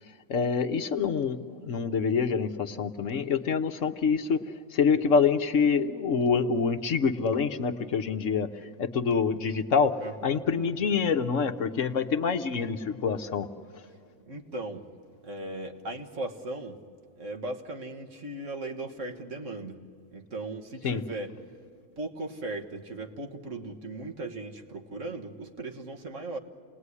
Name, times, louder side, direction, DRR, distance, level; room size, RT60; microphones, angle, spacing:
voice 1, 0.3-4.4 4.7-8.5 8.8-9.9 10.2-13.5 20.8-21.0, left 5 dB, 65° left, 7 dB, 1.2 m, -26 dB
voice 2, 10.0-10.5 14.3-14.8 15.2-16.8 17.2-19.8 20.1-21.3 22.0-26.4, right 2 dB, 60° right, 3 dB, 1.9 m, -37 dB
28.0 x 19.0 x 9.8 m, 2.3 s
omnidirectional pair, 1.5 m